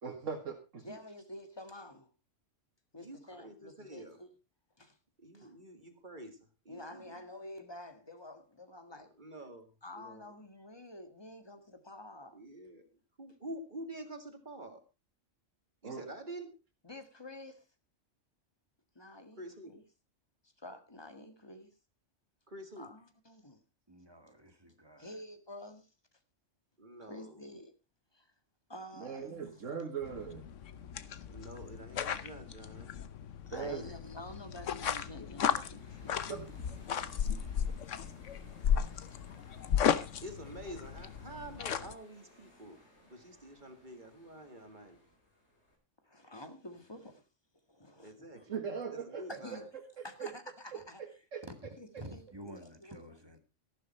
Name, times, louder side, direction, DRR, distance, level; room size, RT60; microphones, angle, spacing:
voice 1, 0.0-1.0 15.8-16.0 29.0-30.4 33.5-33.9 36.1-36.6 48.5-49.2 51.0-51.4, right 6 dB, 80° right, 2.0 m, -40 dB
voice 2, 0.8-2.1 2.9-4.3 4.8-5.0 5.3-5.6 6.7-9.1 9.8-12.4 16.8-17.7 19.0-19.8 20.4-21.7 22.8-23.6 25.0-25.9 27.0-27.7 28.1-28.3 28.7-29.6 33.5-36.2 38.8-39.3 46.0-47.2 47.7-48.5 49.3-49.6 50.0-51.0 51.8-53.0, left 1 dB, 20° left, 1.8 m, -49 dB
voice 3, 3.0-4.2 5.2-7.2 9.2-9.7 9.9-10.4 12.3-12.8 13.2-14.8 15.8-16.6 19.4-19.8 22.5-22.9 26.8-27.4 31.3-32.9 40.2-42.8 43.1-45.0 48.0-48.6 48.9-49.7, right 1 dB, 40° right, 2.2 m, -47 dB
voice 4, 23.9-25.2 52.0-53.4, equal, 20° right, 2.0 m, -50 dB
sound 1, 30.0-41.9, left 8 dB, 75° left, 1.2 m, -35 dB
sound 2, 34.5-45.8, left 1 dB, 60° left, 4.6 m, -62 dB
14.0 x 12.0 x 4.3 m
omnidirectional pair, 1.3 m